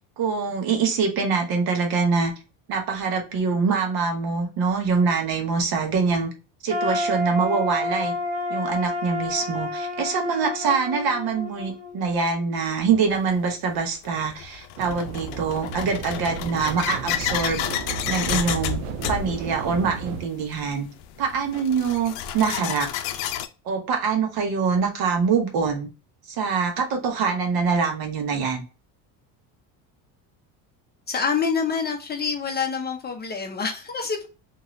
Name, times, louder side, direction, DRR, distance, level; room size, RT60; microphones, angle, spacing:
voice 1, 0.2-2.3 2.7-6.3 6.6-8.1 8.5-17.7 18.1-18.8 19.1-20.9 21.2-22.9 23.6-25.9 26.3-28.6, right 5 dB, 60° right, 4 dB, 1.1 m, -24 dB
sound 1, 6.7-12.6, left 1 dB, 20° right, 1.1 m, -30 dB
sound 2, 13.1-13.2 14.0-23.5, left 10 dB, 80° left, 0.6 m, -31 dB
sound 3, 14.8-20.3, right 7 dB, 90° right, 0.5 m, -34 dB
voice 2, 31.1-34.3, left 5 dB, 25° left, 3 dB, 0.5 m, -26 dB
3.0 x 2.9 x 2.5 m, 0.32 s
cardioid pair, 125°, 42 cm